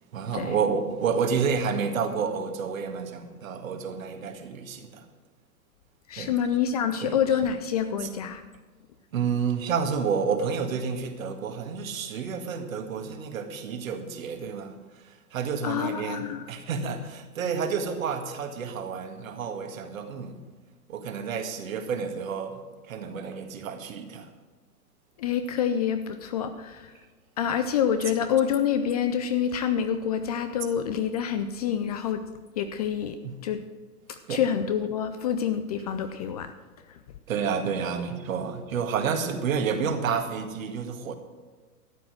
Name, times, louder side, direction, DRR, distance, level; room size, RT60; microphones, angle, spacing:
voice 1, 0.1-5.1 6.2-6.6 7.0-7.4 8.0-8.1 9.1-20.4 20.9-22.6 22.8-24.3 33.2-33.4 34.3-34.5 37.3-41.2, right 6 dB, 60° right, 6 dB, 1.9 m, -30 dB
voice 2, 6.1-8.4 15.6-16.5 25.2-26.9 27.4-32.2 32.6-33.2 33.4-33.6 34.3-36.5, left 8 dB, 25° left, 9 dB, 0.5 m, -27 dB
13.0 x 9.3 x 6.3 m, 1.4 s
figure-of-eight pair, 110°, 46 cm